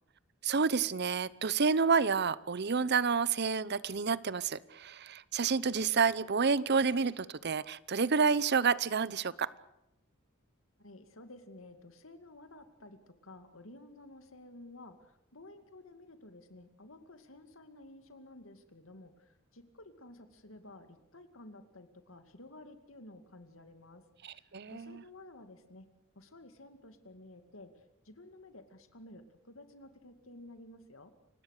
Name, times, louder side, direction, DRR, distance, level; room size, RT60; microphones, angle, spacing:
voice 1, 0.4-9.5 24.2-25.0, right 5 dB, 55° right, 19 dB, 0.8 m, -29 dB
voice 2, 10.8-25.9 26.2-31.1, left 2 dB, 70° left, 8 dB, 2.4 m, -53 dB
29.0 x 17.5 x 6.7 m, 0.86 s
head